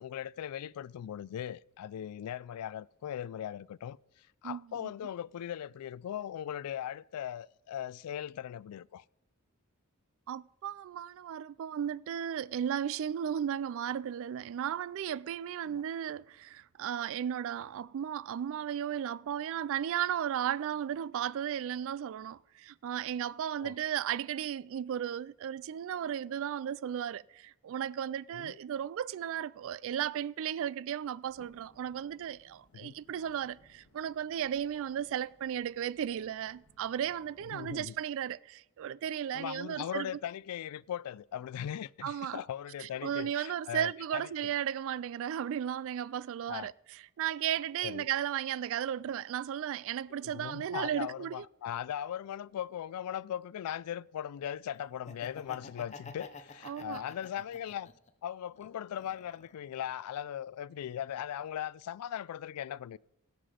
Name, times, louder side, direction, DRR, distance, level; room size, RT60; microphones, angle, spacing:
voice 1, 0.0-9.0 15.7-15.8 23.6-23.7 28.3-28.6 32.7-33.0 37.5-38.0 39.3-44.5 46.5-46.7 47.8-48.1 50.2-57.9 58.2-63.0, left 10 dB, 85° left, 0.3 m, -39 dB
voice 2, 4.4-4.9 10.3-40.2 42.0-42.4 42.8-46.7 47.2-51.4 56.6-57.0, right 9 dB, 65° right, 0.3 m, -35 dB
sound 1, 31.2-37.9, left 1 dB, 65° left, 1.7 m, -66 dB
Laughter, 54.9-58.1 58.5-59.7, left 4 dB, 30° left, 0.8 m, -49 dB
17.0 x 5.9 x 5.0 m
head